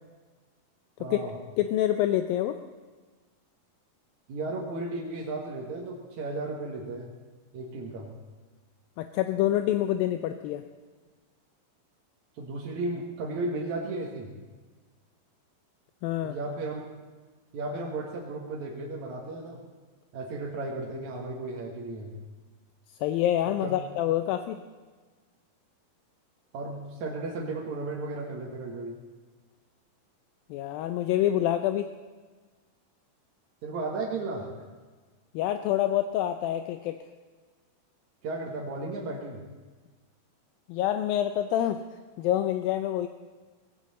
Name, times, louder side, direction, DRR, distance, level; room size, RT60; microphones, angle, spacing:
voice 1, 1.0-1.3 4.3-7.1 7.5-8.1 12.4-14.3 16.2-16.8 17.5-19.6 20.1-22.1 23.6-23.8 26.5-29.0 33.6-34.5 38.2-39.4, right 2 dB, 60° right, -3 dB, 2.6 m, -34 dB
voice 2, 1.6-2.6 9.0-10.6 16.0-16.4 23.0-24.6 30.5-31.9 35.3-37.0 40.7-41.8 42.2-43.1, left 12 dB, 80° left, 8 dB, 2.4 m, -26 dB
19.0 x 16.5 x 4.2 m, 1.4 s
omnidirectional pair, 4.2 m